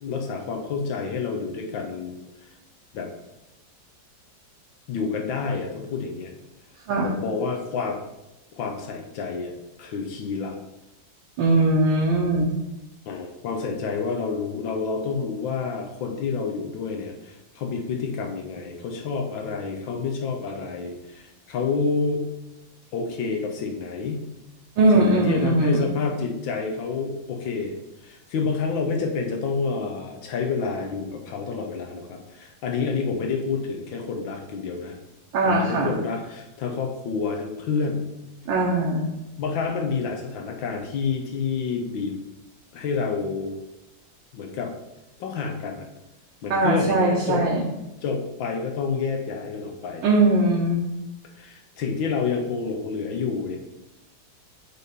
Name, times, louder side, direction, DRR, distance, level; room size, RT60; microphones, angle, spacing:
voice 1, 0.0-2.2 2.9-3.1 4.9-6.3 7.0-8.0 8.6-9.5 9.8-10.5 13.1-22.3 22.9-24.3 24.9-27.7 28.0-35.0 35.4-38.1 39.4-42.2 42.7-43.5 44.3-44.7 45.2-45.9 46.4-47.5 48.0-50.0 51.4-53.6, left 5 dB, 85° left, 2 dB, 1.7 m, -28 dB
voice 2, 11.4-12.5 24.8-25.8 35.3-35.9 38.5-39.1 46.5-47.6 50.0-50.8, right 2 dB, 75° right, -3 dB, 1.7 m, -20 dB
7.9 x 3.7 x 4.2 m, 0.96 s
omnidirectional pair, 2.1 m